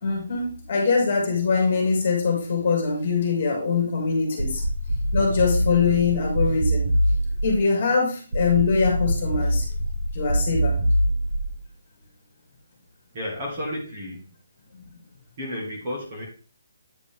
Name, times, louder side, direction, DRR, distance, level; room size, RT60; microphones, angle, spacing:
voice 1, 0.0-4.6 5.1-6.9 7.4-9.7 10.1-10.8 14.7-14.9, left 5 dB, 30° left, 0 dB, 2.7 m, -23 dB
sound 1, 4.4-7.6 8.3-11.6, right 1 dB, 45° right, 1.2 m, -24 dB
voice 2, 13.1-14.3 15.4-16.2, left 1 dB, 20° right, -3 dB, 1.8 m, -32 dB
9.2 x 5.1 x 3.5 m, 0.38 s
hypercardioid pair, 180°, 0 cm